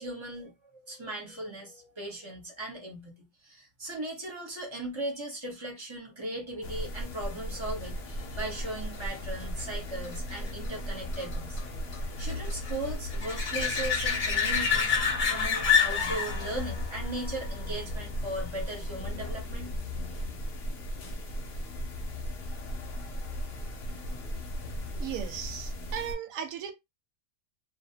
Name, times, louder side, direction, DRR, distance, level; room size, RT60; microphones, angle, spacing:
voice 1, 0.0-11.9 12.2-15.0 15.3-19.8, right 1 dB, 30° right, 0.6 m, -38 dB
sound 1, 6.6-26.2, equal, 85° left, 0.5 m, -36 dB
sound 2, 7.6-18.8 24.5-24.6, left 6 dB, 40° left, 0.8 m, -31 dB
voice 2, 24.9-26.7, right 9 dB, 70° right, 0.9 m, -36 dB
2.6 x 2.0 x 2.7 m
omnidirectional pair, 1.7 m